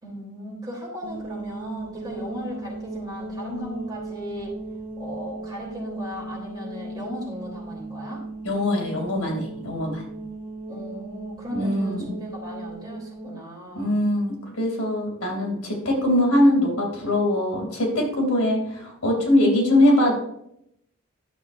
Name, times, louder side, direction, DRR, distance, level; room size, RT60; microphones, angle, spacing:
voice 1, 0.0-4.5 5.0-8.2 10.7-14.0 15.7-16.4 19.8-20.1, equal, 20° right, -4 dB, 3.2 m, -37 dB
sound 1, 1.0-13.4, right 2 dB, 40° right, 1.7 m, -37 dB
voice 2, 8.4-10.0 11.5-12.1 13.7-20.1, left 1 dB, 90° left, 0 dB, 2.8 m, -22 dB
11.5 x 6.8 x 2.6 m, 0.77 s
head